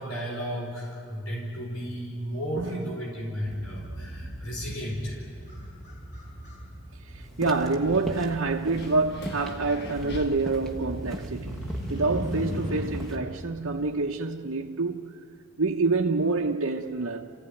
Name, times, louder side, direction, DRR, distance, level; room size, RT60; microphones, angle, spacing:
voice 1, 0.0-5.2, equal, 90° left, 4.9 m, -34 dB
Motorcycle, 3.4-13.2, equal, 35° left, 7.5 m, -38 dB
Wind, 7.1-13.9, left 1 dB, 50° left, 1.5 m, -43 dB
voice 2, 7.1-11.6 11.9-15.1 15.6-17.3, right 3 dB, 75° right, 1.1 m, -27 dB
sound 1, 7.3-13.2, equal, ahead, 1.3 m, -41 dB
29.0 x 16.0 x 9.3 m
head